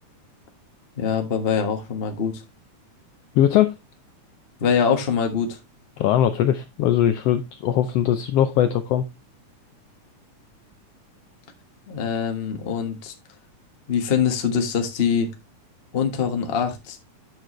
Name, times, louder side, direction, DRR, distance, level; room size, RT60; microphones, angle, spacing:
voice 1, 1.0-2.4 4.6-5.6 11.9-13.1 13.9-15.3 15.9-17.0, left 7 dB, 45° left, 5 dB, 0.7 m, -23 dB
voice 2, 3.3-3.7 6.0-9.0, left 11 dB, 90° left, 9 dB, 1.3 m, -20 dB
10.0 x 6.0 x 3.1 m, 0.23 s
omnidirectional pair, 3.5 m